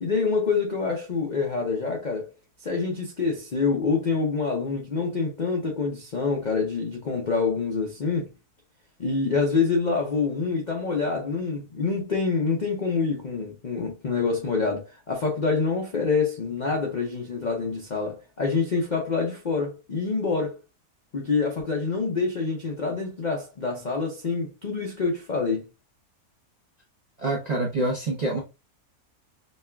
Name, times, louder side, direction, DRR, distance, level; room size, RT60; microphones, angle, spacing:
voice 1, 0.0-2.3 2.6-8.3 9.0-20.6 21.1-25.7, left 4 dB, 55° left, 0.5 m, -26 dB
voice 2, 27.2-28.4, right 2 dB, 45° right, 0.5 m, -26 dB
5.2 x 2.3 x 2.2 m
omnidirectional pair, 1.7 m